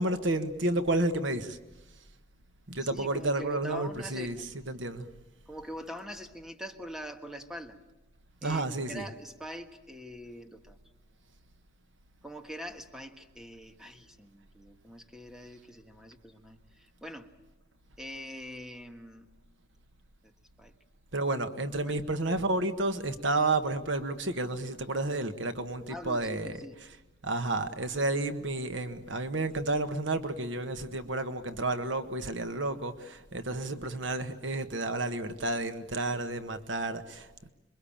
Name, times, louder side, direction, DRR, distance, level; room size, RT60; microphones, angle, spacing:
voice 1, 0.0-1.6 2.7-5.1 8.4-9.1 21.1-26.9 27.2-37.5, right 2 dB, 70° right, 1.5 m, -31 dB
voice 2, 2.9-4.5 5.5-7.8 8.4-10.8 12.2-17.3 18.0-19.3 20.2-20.3 20.6-20.7 21.8-22.0 25.9-26.8, equal, 5° right, 1.5 m, -43 dB
27.0 x 22.5 x 8.8 m
head